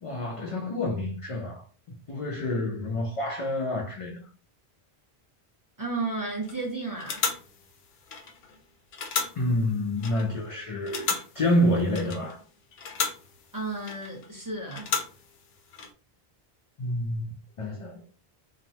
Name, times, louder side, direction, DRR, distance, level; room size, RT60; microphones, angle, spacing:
voice 1, 0.0-4.2 9.4-12.4 16.8-17.3 17.6-18.0, left 1 dB, 50° left, 0.4 m, -28 dB
voice 2, 5.8-7.3 13.5-14.9, right 3 dB, 20° right, 0.7 m, -33 dB
sound 1, 6.4-6.6 7.0-8.6 8.9-10.5 10.9-12.5 12.7-14.3 14.7-15.9, left 6 dB, 75° left, 0.8 m, -34 dB
3.1 x 2.0 x 2.7 m
omnidirectional pair, 1.1 m